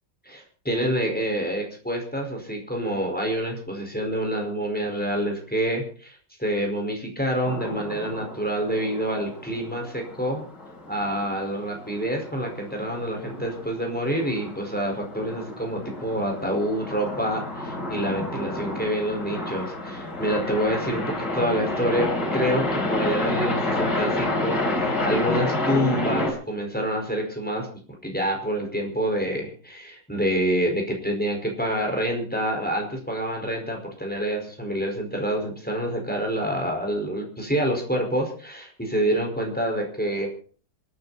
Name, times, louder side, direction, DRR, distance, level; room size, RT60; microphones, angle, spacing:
voice 1, 0.2-10.4 10.9-27.7 28.0-40.3, equal, 5° left, 1 dB, 5.0 m, -27 dB
sound 1, 7.4-26.3, left 2 dB, 70° left, 4.6 m, -30 dB
27.0 x 9.8 x 4.3 m, 0.42 s
omnidirectional pair, 1.9 m